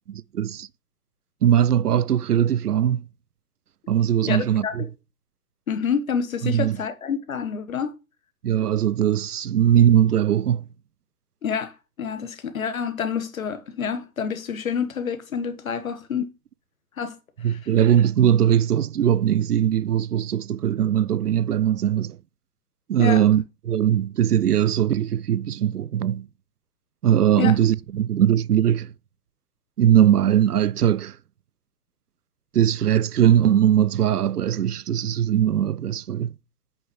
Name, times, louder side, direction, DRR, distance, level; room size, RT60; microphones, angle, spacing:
voice 1, 0.1-0.7 1.4-3.1 3.9-4.9 6.4-6.8 8.4-10.7 17.4-22.2 22.9-26.3 27.0-28.9 29.8-31.2 32.5-36.3, right 10 dB, 85° right, 0.5 m, -20 dB
voice 2, 4.2-4.9 5.7-7.9 11.4-11.7 12.0-16.3 17.0-17.1 17.5-17.6 23.0-23.2 27.4-27.5, left 7 dB, 65° left, 1.4 m, -28 dB
9.0 x 6.0 x 3.1 m
figure-of-eight pair, 125°, 45 cm